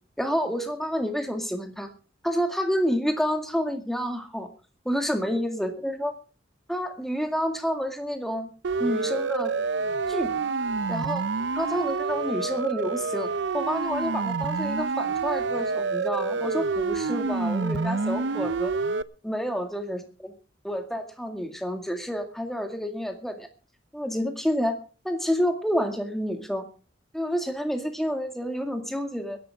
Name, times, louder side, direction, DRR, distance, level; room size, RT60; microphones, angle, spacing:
voice 1, 0.2-1.9 2.2-4.5 4.9-6.1 6.7-8.5 8.8-9.5 10.1-10.3 10.9-11.2 11.5-18.7 19.2-20.3 20.6-23.5 23.9-24.8 25.0-26.7 27.1-29.4, equal, ahead, 5 dB, 2.1 m, -29 dB
Siren, 8.6-19.0, right 4 dB, 85° right, 0.6 m, -28 dB
21.5 x 11.0 x 3.6 m, 0.36 s
head